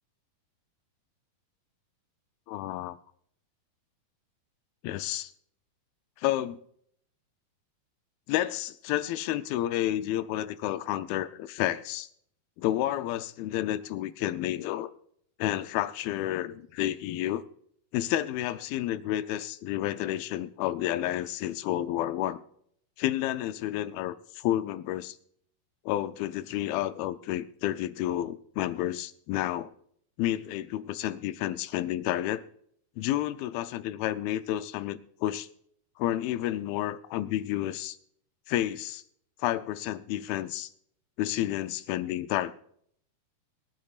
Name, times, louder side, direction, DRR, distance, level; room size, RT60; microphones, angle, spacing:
voice 1, 2.5-3.0 4.8-5.3 6.2-6.6 8.3-12.1 12.6-14.9 15.4-17.4 17.9-22.4 23.0-25.2 25.9-29.7 30.2-32.4 33.0-35.5 36.0-38.0 38.5-39.0 39.4-40.7 41.2-42.5, left 13 dB, 80° left, 12 dB, 2.4 m, -30 dB
23.0 x 12.0 x 2.4 m, 0.66 s
omnidirectional pair, 4.5 m